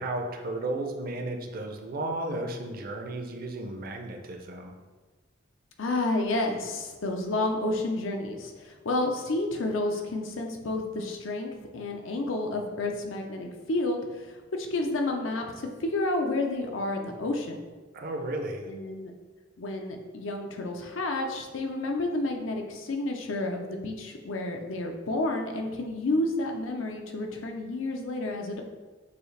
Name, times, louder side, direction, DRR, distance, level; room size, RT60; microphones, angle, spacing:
voice 1, 0.0-4.7 17.9-18.7, right 2 dB, 50° right, 4 dB, 0.5 m, -34 dB
voice 2, 5.8-17.6 18.7-19.1 19.6-28.6, left 2 dB, 90° left, 3 dB, 0.6 m, -30 dB
6.8 x 2.4 x 3.2 m, 1.3 s
head